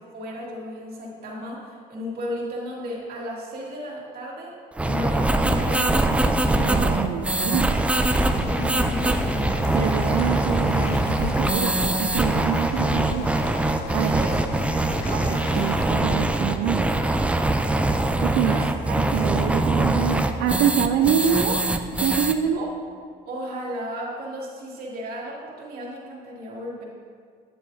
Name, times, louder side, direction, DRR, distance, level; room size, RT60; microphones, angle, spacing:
voice 1, 0.1-4.5 4.8-6.2 8.4-9.1 14.0-15.2 18.4-18.6 18.9-19.1 22.6-22.7 23.3-26.8, equal, 60° right, -4 dB, 2.1 m, -34 dB
sound 1, 4.8-22.3, right 2 dB, 5° right, 0.4 m, -23 dB
voice 2, 6.6-7.7 9.7-13.3 13.9-14.1 15.1-16.9 18.2-21.6 22.0-22.7, right 9 dB, 85° right, 5 dB, 0.4 m, -26 dB
sound 2, 8.0-15.9, left 7 dB, 80° left, 0.5 m, -36 dB
9.2 x 7.8 x 2.7 m, 2.1 s
cardioid pair, 105°, 18 cm